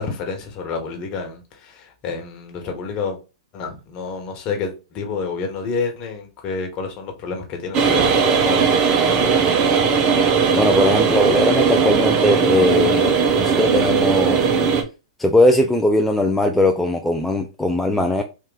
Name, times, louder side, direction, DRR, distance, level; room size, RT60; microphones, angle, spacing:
voice 1, 0.0-3.2 3.5-9.0, left 4 dB, 35° left, 1.3 m, -29 dB
sound 1, 7.7-14.8, right 6 dB, 30° right, 0.7 m, -18 dB
voice 2, 10.5-13.1 13.4-14.5 15.2-18.2, left 1 dB, 5° left, 0.4 m, -19 dB
3.6 x 2.5 x 4.0 m
hypercardioid pair, 120°, 3 cm